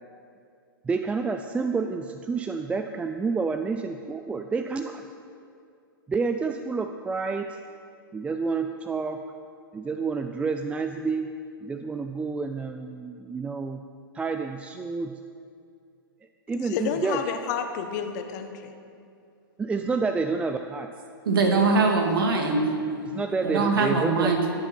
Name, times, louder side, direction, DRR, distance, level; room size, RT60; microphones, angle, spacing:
voice 1, 0.8-5.0 6.1-7.6 8.1-9.2 9.7-13.9 14.1-15.2 16.5-17.3 19.6-20.9 23.0-24.5, right 4 dB, 10° right, 7 dB, 0.4 m, -29 dB
voice 2, 16.6-18.7, left 7 dB, 50° left, 6 dB, 1.4 m, -30 dB
voice 3, 21.3-22.7 23.4-24.5, right 3 dB, 70° right, 3 dB, 2.3 m, -22 dB
18.0 x 9.4 x 4.5 m, 2.4 s
hypercardioid pair, 115°, 12 cm